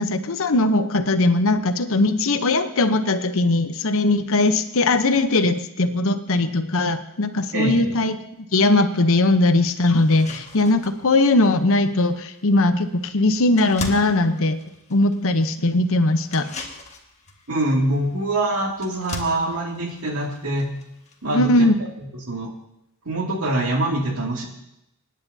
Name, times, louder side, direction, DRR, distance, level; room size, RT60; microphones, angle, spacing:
voice 1, 0.0-8.2 8.5-14.6 14.9-16.5 21.3-21.8, left 2 dB, 65° left, 9 dB, 0.9 m, -19 dB
voice 2, 7.5-8.0 17.5-20.7 21.2-22.5 23.1-24.4, right 1 dB, 70° right, 0 dB, 2.5 m, -24 dB
sound 1, 9.0-9.1 9.5-9.6 10.0-21.6, left 2 dB, 30° left, 1.5 m, -40 dB
25.0 x 10.5 x 2.8 m, 0.83 s
head